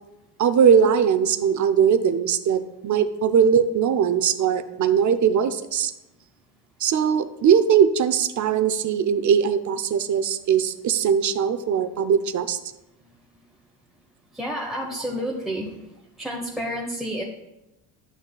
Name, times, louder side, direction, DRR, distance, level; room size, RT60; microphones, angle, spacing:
voice 1, 0.4-5.9 6.8-12.6, right 7 dB, 40° right, 11 dB, 0.6 m, -20 dB
voice 2, 14.3-15.8 16.2-17.2, equal, ahead, -1 dB, 1.0 m, -30 dB
11.0 x 6.3 x 2.3 m, 0.94 s
cardioid pair, 90°, 44 cm